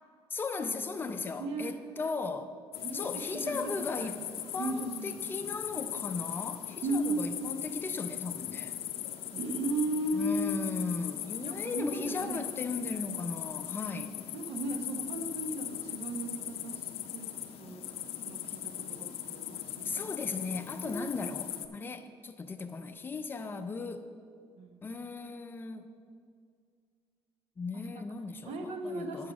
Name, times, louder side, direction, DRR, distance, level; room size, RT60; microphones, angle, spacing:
voice 1, 0.3-2.5 2.9-4.2 4.5-8.8 10.1-14.2 19.8-24.1 24.8-25.8 27.6-29.3, left 4 dB, 20° left, 7 dB, 0.5 m, -37 dB
voice 2, 1.4-1.7 2.8-3.7 4.0-4.1 4.6-5.2 5.4-5.5 6.8-7.2 9.3-10.6 11.4-12.4 12.9-13.1 14.3-17.3 17.6-17.8 18.2-20.1 20.8-21.1 24.6-25.0 27.9-28.0 28.4-29.3, right 1 dB, 70° right, 5 dB, 0.9 m, -36 dB
sound 1, 2.7-21.7, left 11 dB, 70° left, 0.5 m, -39 dB
8.0 x 6.3 x 5.9 m, 2.2 s
cardioid pair, 145°, 10 cm